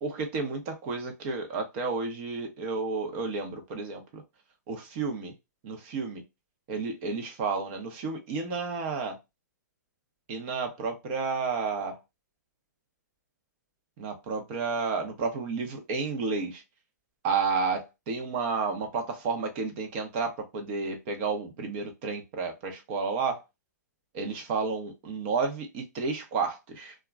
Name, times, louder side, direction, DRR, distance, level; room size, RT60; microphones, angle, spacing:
voice 1, 0.0-4.2 4.7-5.3 5.6-6.2 6.7-9.2 10.3-12.0 14.0-16.6 17.2-23.4 24.1-26.9, right 4 dB, 40° right, 0.8 m, -31 dB
2.9 x 2.4 x 2.4 m
hypercardioid pair, 130°, 10 cm